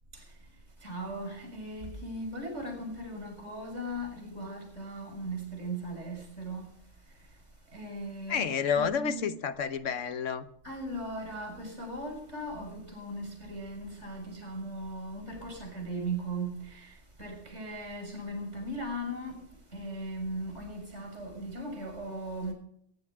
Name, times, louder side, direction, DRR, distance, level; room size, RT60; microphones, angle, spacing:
voice 1, 0.8-6.7 7.7-9.3 10.6-22.5, right 1 dB, 65° right, 6.8 m, -38 dB
voice 2, 8.3-10.4, left 7 dB, 70° left, 1.3 m, -30 dB
23.0 x 11.0 x 4.8 m
omnidirectional pair, 1.3 m